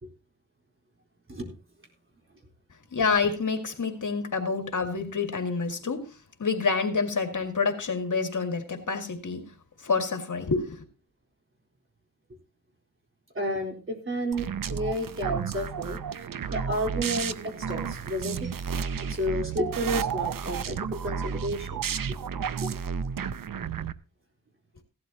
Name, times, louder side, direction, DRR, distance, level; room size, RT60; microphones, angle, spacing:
voice 1, 2.9-6.1 6.4-9.5 9.8-10.8, left 4 dB, 65° left, 5 dB, 2.1 m, -28 dB
voice 2, 13.3-18.7 19.0-21.8 22.1-22.2 22.6-22.7, equal, 40° right, 1 dB, 4.0 m, -32 dB
sound 1, 14.3-23.9, right 6 dB, 80° right, 0.7 m, -32 dB
16.5 x 12.0 x 2.9 m, 0.34 s
wide cardioid pair, 100°, 33 cm